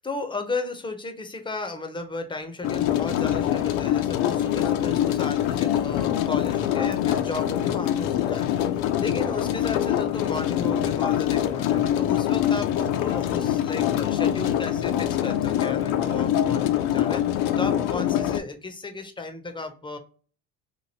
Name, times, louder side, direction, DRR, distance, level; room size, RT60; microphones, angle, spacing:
voice 1, 0.0-20.0, left 3 dB, 10° left, 6 dB, 0.5 m, -34 dB
sound 1, 2.6-18.4, left 11 dB, 65° left, 0.5 m, -24 dB
2.9 x 2.5 x 2.7 m, 0.39 s
hypercardioid pair, 70°, 43 cm